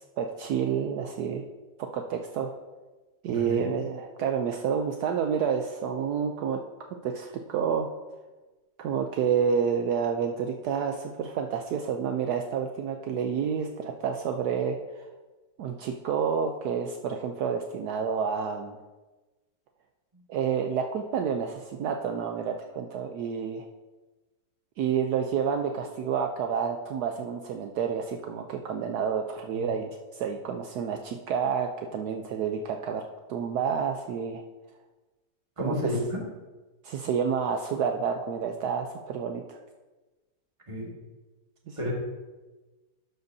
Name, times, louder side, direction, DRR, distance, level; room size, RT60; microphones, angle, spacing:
voice 1, 0.2-1.4 1.9-2.5 3.2-6.6 7.0-7.9 8.8-15.1 15.6-18.8 20.3-23.6 24.8-34.4 35.6-35.7 36.8-39.6 41.7-41.9, right 7 dB, 70° right, 4 dB, 1.1 m, -29 dB
voice 2, 3.3-3.7 29.5-29.6 35.6-36.2 40.7-40.9 41.8-41.9, left 1 dB, 20° right, -2 dB, 1.7 m, -31 dB
12.0 x 7.9 x 2.7 m, 1.2 s
omnidirectional pair, 1.8 m